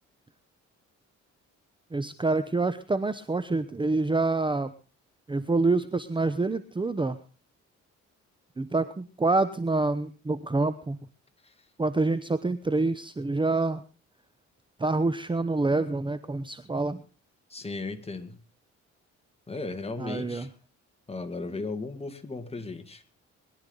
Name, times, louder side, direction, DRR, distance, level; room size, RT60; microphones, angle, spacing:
voice 1, 1.9-4.7 5.3-7.2 8.6-11.0 11.8-13.8 14.8-17.0 20.0-20.5, right 3 dB, 15° right, 12 dB, 0.9 m, -27 dB
voice 2, 17.5-18.4 19.5-20.5 21.1-23.0, left 3 dB, 20° left, 7 dB, 2.1 m, -36 dB
21.5 x 11.5 x 3.9 m, 0.34 s
cardioid pair, 90°, 30 cm